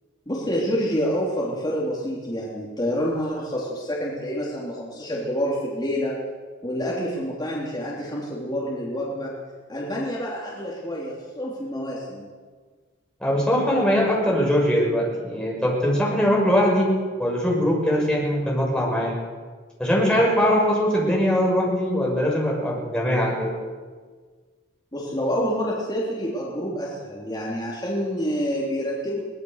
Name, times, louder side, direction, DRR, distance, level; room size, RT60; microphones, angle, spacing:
voice 1, 0.3-6.1 6.6-9.3 9.7-12.2 24.9-29.2, equal, 20° left, -6 dB, 3.6 m, -27 dB
voice 2, 13.2-16.9 17.2-19.1 19.8-23.6, equal, 5° left, -3 dB, 6.3 m, -21 dB
23.0 x 19.0 x 6.7 m, 1.5 s
head